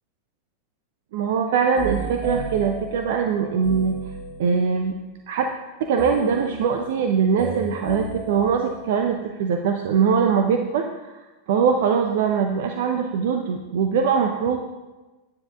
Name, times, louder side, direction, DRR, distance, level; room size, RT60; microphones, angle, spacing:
voice 1, 1.1-3.9 4.4-5.0 5.3-5.5 5.8-14.6, right 6 dB, 55° right, 4 dB, 0.8 m, -22 dB
sound 1, 1.8-4.8 6.0-9.3, right 2 dB, 50° left, 3.2 m, -34 dB
9.8 x 9.8 x 3.6 m, 1.1 s
figure-of-eight pair, 90°, 0 cm